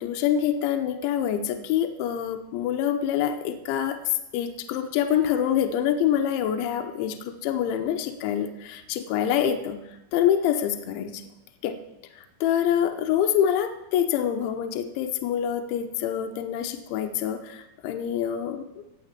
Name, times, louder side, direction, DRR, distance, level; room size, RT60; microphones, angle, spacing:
voice 1, 0.0-9.9 10.1-11.2 11.6-11.8 12.2-18.7, left 9 dB, 85° left, 6 dB, 3.1 m, -26 dB
16.5 x 5.9 x 8.6 m, 0.92 s
omnidirectional pair, 5.6 m